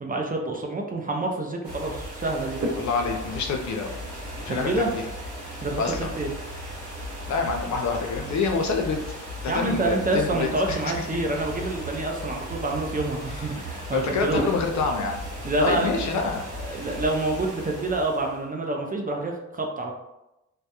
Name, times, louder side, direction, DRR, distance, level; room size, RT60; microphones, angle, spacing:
voice 1, 0.0-2.6 4.5-4.9 5.6-6.3 9.5-14.4 15.4-15.9 16.6-19.9, right 2 dB, 30° right, 1 dB, 0.5 m, -27 dB
sound 1, 1.6-18.4, equal, 70° right, 0.9 m, -35 dB
voice 2, 2.8-3.9 4.4-5.0 5.8-6.1 7.3-9.1 9.4-11.1 13.9-15.2 15.6-16.5, left 4 dB, 65° left, 3 dB, 0.5 m, -27 dB
2.2 x 2.0 x 2.8 m, 0.93 s
cardioid pair, 55°, 31 cm